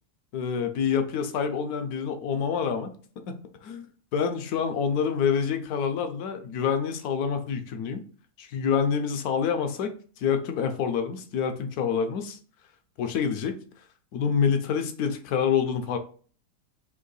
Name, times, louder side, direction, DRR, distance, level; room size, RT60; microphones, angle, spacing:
voice 1, 0.3-2.9 3.3-3.4 3.6-3.9 4.1-8.0 8.4-12.4 13.0-13.6 14.1-16.0, left 7 dB, 70° left, 7 dB, 1.1 m, -27 dB
3.6 x 2.9 x 3.9 m, 0.43 s
omnidirectional pair, 1.7 m